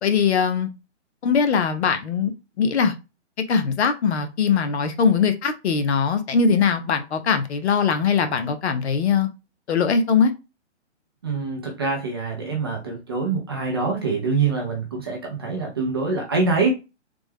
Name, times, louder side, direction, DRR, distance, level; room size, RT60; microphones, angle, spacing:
voice 1, 0.0-0.7 1.2-2.3 2.6-2.9 3.5-9.3 9.7-10.3, left 6 dB, 65° left, 0.7 m, -21 dB
voice 2, 11.2-16.7, right 4 dB, 20° right, 0.4 m, -25 dB
3.4 x 2.1 x 3.3 m
hypercardioid pair, 150°, 36 cm